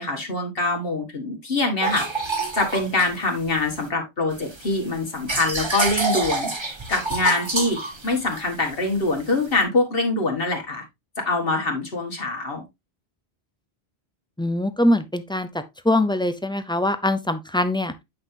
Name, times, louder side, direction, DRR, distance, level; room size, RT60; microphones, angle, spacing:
voice 1, 0.0-2.1 2.5-10.8 11.3-12.6, left 2 dB, 60° left, 1.8 m, -24 dB
sound 1, 1.8-3.9 4.3-9.6, right 3 dB, 25° right, 1.1 m, -28 dB
voice 2, 14.4-15.5 15.8-17.9, left 1 dB, 5° left, 0.5 m, -22 dB
8.5 x 5.4 x 2.7 m
omnidirectional pair, 1.1 m